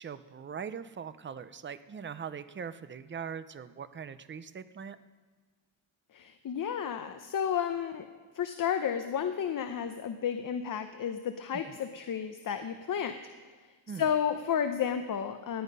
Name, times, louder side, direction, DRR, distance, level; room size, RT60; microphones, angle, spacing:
voice 1, 0.0-5.0 11.7-11.8 13.9-14.1, right 7 dB, 25° right, 13 dB, 0.5 m, -41 dB
voice 2, 6.1-8.0 8.3-13.1 13.9-15.6, left 8 dB, 45° left, 8 dB, 0.8 m, -32 dB
18.0 x 11.0 x 5.4 m, 1.4 s
cardioid pair, 135°, 48 cm